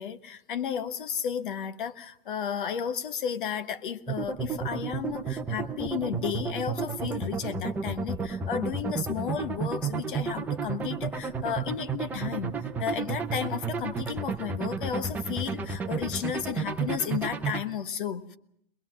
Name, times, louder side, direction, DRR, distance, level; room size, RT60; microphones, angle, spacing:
voice 1, 0.0-18.4, left 8 dB, 60° left, 1.5 m, -33 dB
sound 1, 4.1-17.6, right 5 dB, 5° right, 0.9 m, -32 dB
22.5 x 21.5 x 7.4 m
hypercardioid pair, 160°, 29 cm